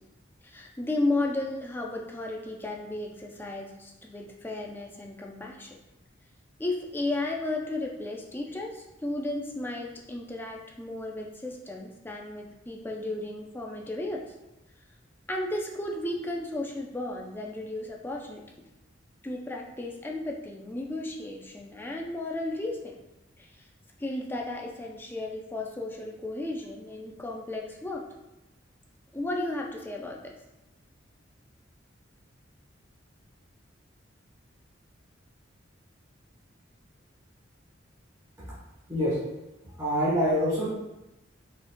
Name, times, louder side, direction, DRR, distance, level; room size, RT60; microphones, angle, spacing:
voice 1, 0.4-5.8 6.6-14.2 15.3-18.4 19.2-23.0 23.4-23.7 24.0-28.0 29.1-30.3, left 2 dB, 10° left, 0 dB, 0.4 m, -34 dB
voice 2, 39.6-40.7, equal, 15° right, -9 dB, 1.1 m, -26 dB
4.7 x 3.9 x 2.2 m, 0.97 s
head